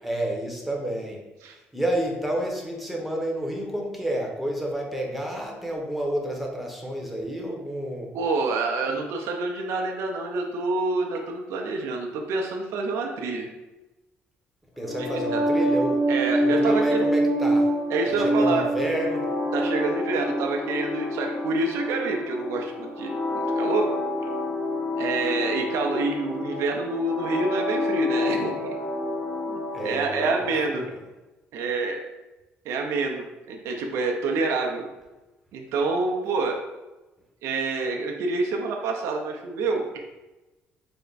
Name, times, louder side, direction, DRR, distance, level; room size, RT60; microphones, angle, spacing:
voice 1, 0.0-8.1 8.9-9.0 14.8-16.0 16.4-17.7 18.0-19.3 29.7-31.0, right 1 dB, ahead, -1 dB, 0.8 m, -30 dB
voice 2, 8.1-13.5 15.3-15.4 16.1-17.1 17.9-18.6 19.5-23.9 25.0-28.5 29.5-30.9 31.5-32.1 32.7-34.9 35.5-36.6 37.4-39.8, right 3 dB, 75° right, 2 dB, 0.5 m, -27 dB
sound 1, 14.8-30.7, equal, 80° left, 0.8 m, -27 dB
3.3 x 2.1 x 3.9 m, 1.1 s
supercardioid pair, 80°, 5 cm